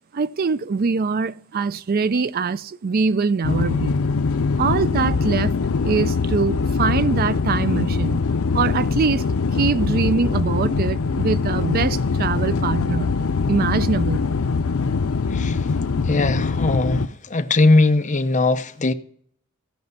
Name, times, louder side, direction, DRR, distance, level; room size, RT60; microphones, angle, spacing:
voice 1, 0.1-4.0 4.6-5.5 5.8-9.3 9.5-13.2 13.5-14.2, right 5 dB, 45° right, 0.4 m, -23 dB
sound 1, 3.4-17.1, left 4 dB, 90° left, 0.6 m, -22 dB
voice 2, 15.3-15.7 16.0-18.9, left 2 dB, 35° left, 0.7 m, -19 dB
16.0 x 5.4 x 5.4 m
head